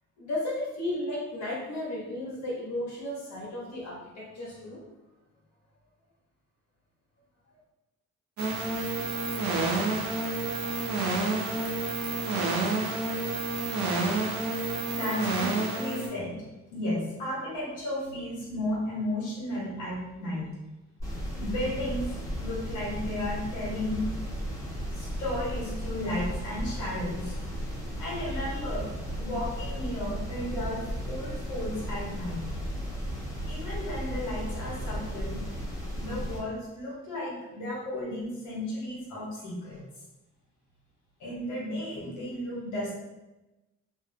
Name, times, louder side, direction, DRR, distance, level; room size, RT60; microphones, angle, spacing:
voice 1, 0.2-4.8, left 1 dB, 60° left, -4 dB, 1.0 m, -34 dB
sound 1, 8.4-16.1, right 3 dB, 65° right, 0.6 m, -29 dB
voice 2, 14.9-16.3 16.7-20.5 21.4-24.1 24.9-27.4 28.0-28.8 29.2-32.4 33.5-35.4 35.9-39.8 41.2-42.9, left 1 dB, 90° left, -6 dB, 1.1 m, -34 dB
sound 2, 21.0-36.4, equal, 10° left, 0.8 m, -35 dB
2.6 x 2.0 x 2.6 m, 1.0 s
cardioid pair, 90°, 30 cm